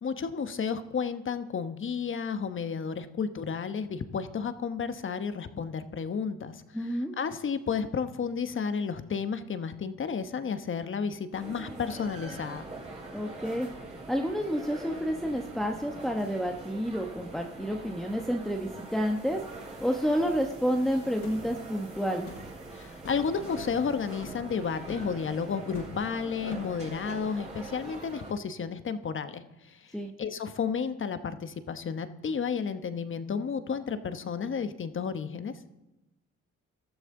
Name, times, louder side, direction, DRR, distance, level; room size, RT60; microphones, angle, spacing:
voice 1, 0.0-12.6 22.7-29.9 30.2-35.6, left 6 dB, 40° left, 11 dB, 1.1 m, -32 dB
voice 2, 6.7-7.1 13.1-13.7 14.1-19.4 19.8-22.3 29.9-30.1, equal, ahead, 2 dB, 1.1 m, -29 dB
sound 1, 11.3-28.3, right 2 dB, 20° right, 4.5 m, -43 dB
sound 2, 21.2-21.4 22.3-22.5 23.0-23.2 23.6-23.8 24.2-24.5 24.9-25.1 25.7-26.1 26.5-26.8, left 4 dB, 80° left, 4.8 m, -43 dB
19.0 x 13.0 x 3.8 m, 1.0 s
cardioid pair, 90°, 30 cm